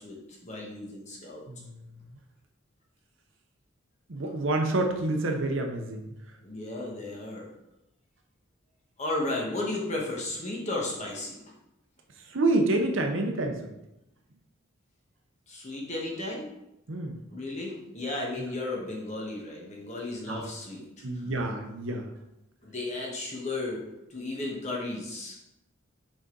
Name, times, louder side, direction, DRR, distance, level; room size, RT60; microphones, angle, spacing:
voice 1, 0.0-1.4 6.4-7.5 9.0-11.4 15.5-16.5 17.3-21.3 22.6-23.8 24.1-25.4, left 2 dB, 35° left, -2 dB, 1.3 m, -34 dB
voice 2, 1.5-1.9 4.1-6.1 12.3-13.7 16.9-17.2 18.4-18.5 20.3-20.4 21.0-22.1, right 2 dB, 65° right, 4 dB, 0.8 m, -28 dB
6.3 x 4.0 x 3.8 m, 0.88 s
head